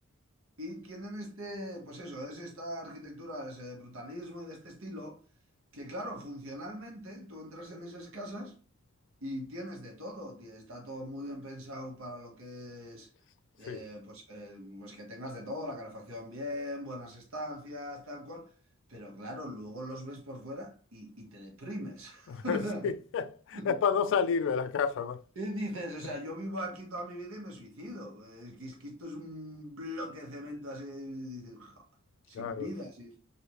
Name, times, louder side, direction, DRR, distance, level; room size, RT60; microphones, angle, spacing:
voice 1, 0.6-5.2 5.7-8.5 9.2-13.1 13.6-18.5 18.9-22.9 23.5-23.8 25.4-31.8 32.3-33.2, equal, 80° right, 1.1 m, -41 dB
voice 2, 22.3-25.2 32.3-32.7, left 6 dB, 65° left, 0.3 m, -30 dB
3.3 x 2.7 x 2.9 m
head